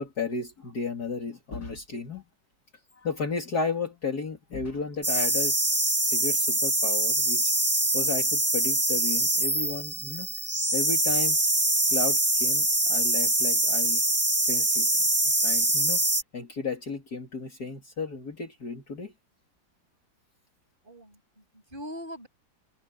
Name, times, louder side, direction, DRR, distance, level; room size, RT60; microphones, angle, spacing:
voice 1, 0.0-2.2 3.0-5.6 6.0-7.5 7.9-10.3 10.7-11.4 11.9-14.0 14.4-14.9 15.4-16.0 16.3-19.1, left 4 dB, 50° left, 3.1 m, -33 dB
sound 1, 5.0-16.2, right 1 dB, 10° right, 1.0 m, -24 dB
voice 2, 20.8-22.3, equal, 25° right, 7.6 m, -42 dB
omnidirectional pair, 2.1 m